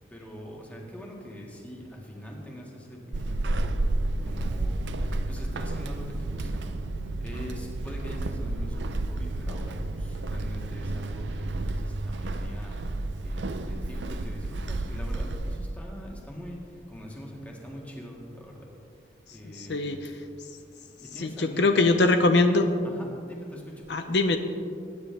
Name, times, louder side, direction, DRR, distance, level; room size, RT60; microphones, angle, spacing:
voice 1, 0.1-3.7 4.2-6.7 7.2-9.7 10.3-11.2 11.8-12.7 13.2-16.6 16.9-18.1 18.4-18.6 19.3-19.8 21.1-22.3 22.8-23.6, equal, 10° left, -2 dB, 1.9 m, -42 dB
Walk footsteps / Squeak, 3.1-15.8, right 2 dB, 80° right, 0.6 m, -31 dB
voice 2, 19.5-20.0 21.2-22.7 23.9-24.4, left 2 dB, 70° left, 7 dB, 0.7 m, -22 dB
20.0 x 9.5 x 3.4 m, 2.4 s
head